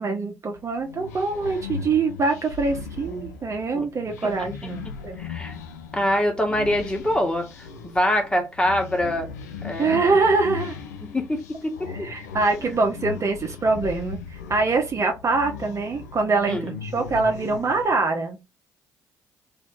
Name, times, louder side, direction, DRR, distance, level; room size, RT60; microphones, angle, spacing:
voice 1, 0.0-5.2 9.8-10.7 11.9-14.2 14.5-18.5, right 3 dB, 35° right, 1.1 m, -24 dB
sound 1, 0.5-18.0, left 6 dB, 80° left, 0.6 m, -38 dB
voice 2, 5.2-5.6 5.9-7.5 7.8-9.3 9.6-10.2 11.0-11.9 16.5-16.7, left 1 dB, 10° left, 1.7 m, -24 dB
3.9 x 2.8 x 3.7 m
figure-of-eight pair, 45°, 9 cm